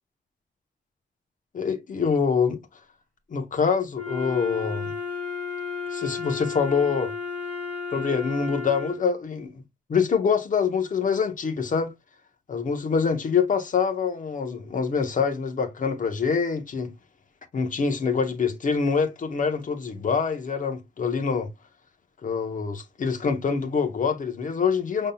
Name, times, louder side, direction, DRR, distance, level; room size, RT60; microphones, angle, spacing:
voice 1, 1.5-2.6 3.3-4.9 5.9-7.1 7.9-9.6 9.9-11.9 12.5-16.9 17.5-21.5 22.2-25.1, left 5 dB, 45° left, 1.0 m, -25 dB
Wind instrument woodwind instrument, 3.9-9.1, left 5 dB, 10° left, 2.7 m, -33 dB
5.5 x 3.6 x 2.3 m
wide cardioid pair, 175°, 18 cm